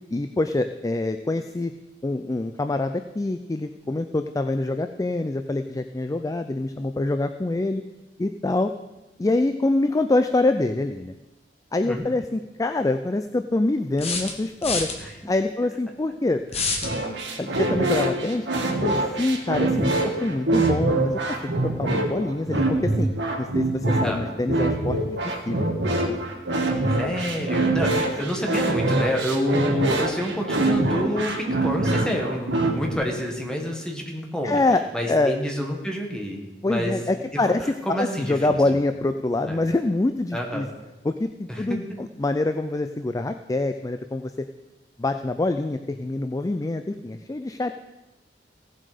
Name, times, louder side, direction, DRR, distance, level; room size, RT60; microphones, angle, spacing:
voice 1, 0.1-1.7 2.0-7.8 8.2-8.7 9.2-11.1 11.7-14.9 15.3-16.4 17.4-18.5 18.8-23.1 23.4-25.0 25.5-25.8 28.4-28.5 34.4-35.4 36.6-40.7 41.0-44.3 45.0-47.7, left 2 dB, 20° left, 8 dB, 0.4 m, -25 dB
sound 1, 11.9-12.0 14.0-15.0 16.5-16.9, left 4 dB, 35° left, 1.4 m, -27 dB
sound 2, 16.8-32.9, right 2 dB, 80° right, 1.6 m, -24 dB
voice 2, 27.0-34.6 34.9-36.9 37.3-37.4 37.8-38.6 39.5-39.6 40.3-40.7 41.5-41.8, equal, 5° left, 1 dB, 1.6 m, -28 dB
16.5 x 7.5 x 5.0 m, 1.0 s
head